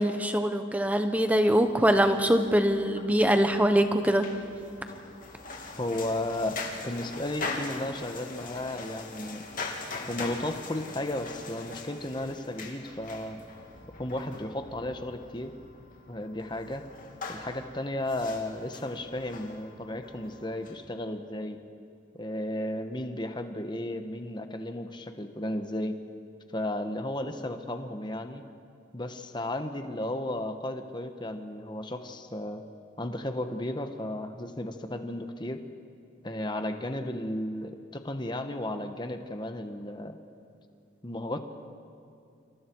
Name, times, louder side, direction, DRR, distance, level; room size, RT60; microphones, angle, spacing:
voice 1, 0.0-4.3, equal, 10° right, 7 dB, 1.1 m, -23 dB
sound 1, 1.1-20.7, left 3 dB, 45° left, 2.9 m, -42 dB
voice 2, 5.7-9.4 10.1-13.4 14.0-15.5 16.1-16.8 17.3-21.6 22.1-26.0 26.5-28.4 28.9-32.6 33.0-35.6 36.2-40.2 41.0-41.4, left 1 dB, 25° left, 7 dB, 1.3 m, -34 dB
30.0 x 27.5 x 4.7 m, 2.5 s
head